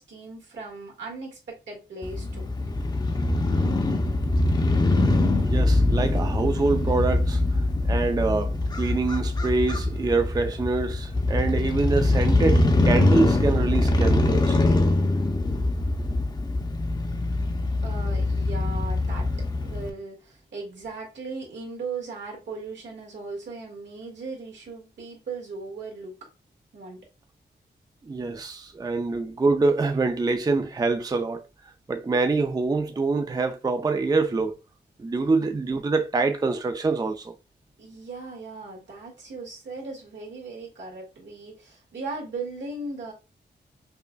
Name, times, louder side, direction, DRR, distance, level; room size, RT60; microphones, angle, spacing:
voice 1, 0.0-2.5 17.8-26.3 26.7-27.1 37.8-43.1, right 3 dB, 80° right, 1.7 m, -38 dB
Crow / Motorcycle, 2.0-19.9, left 2 dB, 25° left, 0.6 m, -23 dB
voice 2, 5.5-14.6 28.0-34.6 35.0-37.4, right 3 dB, 20° right, 0.4 m, -25 dB
5.4 x 2.5 x 2.2 m
wide cardioid pair, 90°, 18 cm